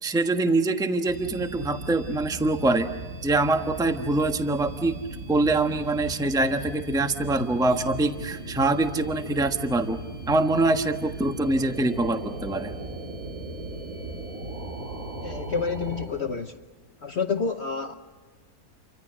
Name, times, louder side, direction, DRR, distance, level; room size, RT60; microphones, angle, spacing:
voice 1, 0.0-2.9 3.2-4.9 5.3-10.0 10.3-12.7, right 2 dB, 5° right, 1.2 m, -24 dB
sound 1, 1.1-16.1, right 2 dB, 60° right, 5.1 m, -37 dB
voice 2, 15.2-16.5 17.0-17.9, left 5 dB, 50° left, 1.1 m, -29 dB
29.5 x 25.0 x 6.4 m
omnidirectional pair, 1.6 m